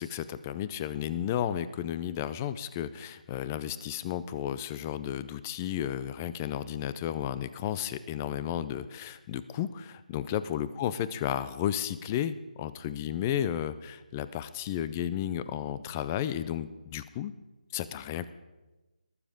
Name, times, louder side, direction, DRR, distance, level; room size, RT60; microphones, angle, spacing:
voice 1, 0.0-17.3 17.7-18.3, left 10 dB, 15° left, 15 dB, 0.4 m, -33 dB
19.5 x 7.2 x 5.0 m, 1.1 s
figure-of-eight pair, 160°, 5 cm